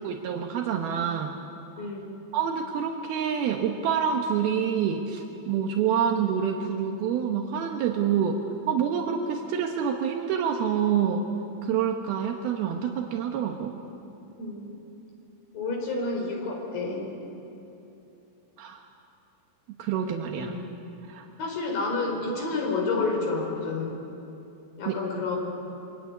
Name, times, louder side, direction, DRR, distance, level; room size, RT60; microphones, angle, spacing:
voice 1, 0.0-1.3 1.8-1.9 2.3-8.4 8.7-11.2 11.6-13.7 18.6-18.8 19.8-20.6 21.1-21.3 24.9-25.0, right 8 dB, 80° right, 2 dB, 3.1 m, -27 dB
voice 2, 1.8-2.1 14.4-14.8 15.5-17.1 20.4-20.6 21.4-24.0 24.8-25.4, left 3 dB, 65° left, 1 dB, 6.1 m, -29 dB
24.5 x 24.5 x 9.5 m, 2.9 s
omnidirectional pair, 4.4 m